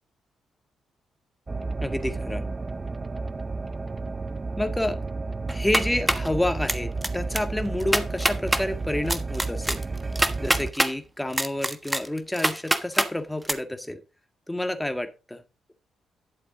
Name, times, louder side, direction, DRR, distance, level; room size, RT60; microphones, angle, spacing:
sound 1, 1.5-10.7, right 3 dB, 30° right, 0.6 m, -32 dB
voice 1, 1.8-2.4 4.6-5.0 5.5-9.8 10.4-14.0 14.5-15.4, left 1 dB, 10° left, 8 dB, 1.7 m, -29 dB
sound 2, 5.5-6.3 6.7-7.1 7.3-7.4 7.8-8.6 9.1-10.9 11.3-13.1 13.4-13.5, right 1 dB, 10° right, 1.3 m, -24 dB
11.5 x 7.5 x 3.8 m, 0.30 s
hypercardioid pair, 45°, 0 cm